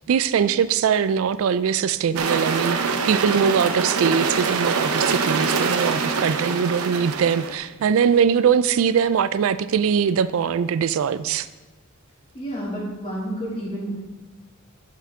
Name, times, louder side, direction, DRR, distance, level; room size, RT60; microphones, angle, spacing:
voice 1, 0.1-2.8 3.1-11.5, right 7 dB, 65° right, 15 dB, 0.3 m, -21 dB
sound 1, 2.2-7.6, right 5 dB, 80° right, 0.7 m, -24 dB
voice 2, 12.3-13.9, right 1 dB, 30° left, -7 dB, 3.2 m, -30 dB
11.5 x 5.7 x 3.6 m, 1.1 s
head